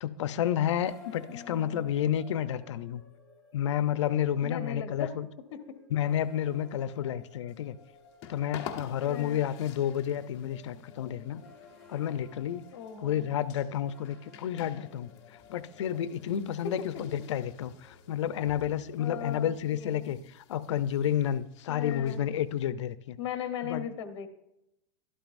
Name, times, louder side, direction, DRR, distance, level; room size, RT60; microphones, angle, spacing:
voice 1, 0.0-3.0 3.5-5.3 5.9-7.8 8.3-11.4 11.9-12.6 13.0-15.1 15.5-23.2 23.6-23.8, left 10 dB, 80° left, 14 dB, 0.6 m, -30 dB
sound 1, 0.8-20.0, left 4 dB, ahead, 2.9 m, -56 dB
voice 2, 1.3-1.9 4.4-5.1 5.5-5.8 9.1-9.4 12.7-13.3 16.9-17.0 19.0-20.2 21.7-22.2 23.2-24.3, left 9 dB, 65° left, 7 dB, 1.1 m, -38 dB
sound 2, 7.5-22.6, left 8 dB, 35° left, 1.1 m, -50 dB
12.5 x 12.5 x 2.6 m, 0.87 s
supercardioid pair, 160°, 15 cm